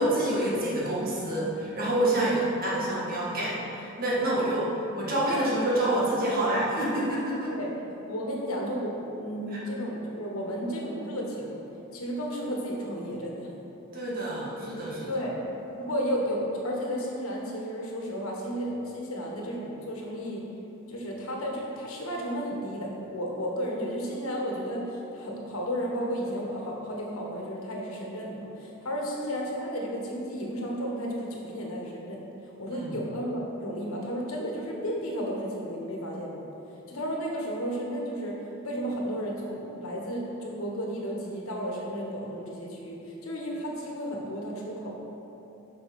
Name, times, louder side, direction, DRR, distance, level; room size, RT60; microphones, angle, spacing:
voice 1, 0.0-7.5 9.5-9.6 13.9-15.1 32.7-33.0, right 1 dB, 45° right, -6 dB, 1.9 m, -27 dB
voice 2, 8.1-11.6 11.9-13.5 15.1-15.4 15.8-20.4 20.9-36.4 36.9-44.9, equal, 80° left, -2 dB, 1.5 m, -33 dB
7.8 x 5.6 x 5.4 m, 3.0 s
head